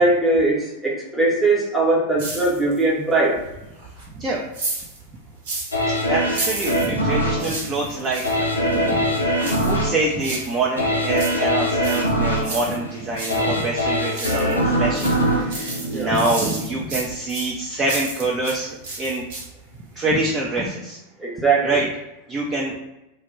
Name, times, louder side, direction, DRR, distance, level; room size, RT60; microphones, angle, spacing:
voice 1, 0.0-3.4 15.9-16.1 21.2-21.8, right 2 dB, 5° right, -4 dB, 0.7 m, -20 dB
sound 1, 2.2-2.9 3.3-5.8 6.3-8.4 9.4-10.6 11.0-13.4 13.8-14.6 14.9-18.6 18.8-19.7 20.0-20.1, right 3 dB, 55° right, 0.8 m, -32 dB
sound 2, 5.7-16.7 17.1-17.2, equal, 80° left, 0.4 m, -23 dB
voice 2, 6.0-9.1 9.4-19.2 20.0-21.0 21.6-21.9 22.3-22.8, right 2 dB, 25° right, -2 dB, 0.4 m, -26 dB
2.1 x 2.1 x 3.1 m, 0.93 s
figure-of-eight pair, 90°, 0 cm